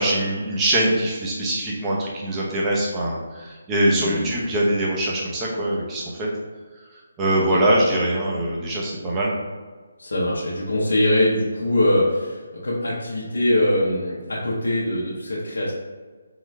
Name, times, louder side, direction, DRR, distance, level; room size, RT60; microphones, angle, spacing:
voice 1, 0.0-6.3 6.9-9.3, right 1 dB, 15° right, -4 dB, 0.9 m, -23 dB
voice 2, 3.9-4.3 7.3-7.6 10.0-15.7, left 1 dB, 75° left, -5 dB, 0.8 m, -22 dB
3.8 x 3.1 x 3.3 m, 1.4 s
figure-of-eight pair, 155°, 0 cm